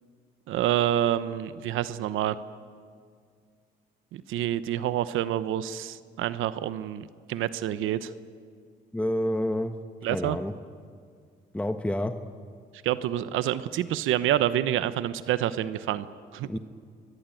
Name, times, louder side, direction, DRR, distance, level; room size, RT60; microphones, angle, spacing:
voice 1, 0.5-2.3 4.1-8.1 10.0-10.4 12.8-16.1 16.3-16.5, right 12 dB, 85° right, 14 dB, 0.9 m, -27 dB
voice 2, 8.9-9.7 10.1-10.5 11.5-12.1 16.4-16.6, left 1 dB, 5° left, 8 dB, 1.2 m, -28 dB
26.0 x 21.5 x 9.1 m, 2.1 s
cardioid pair, 90°, 20 cm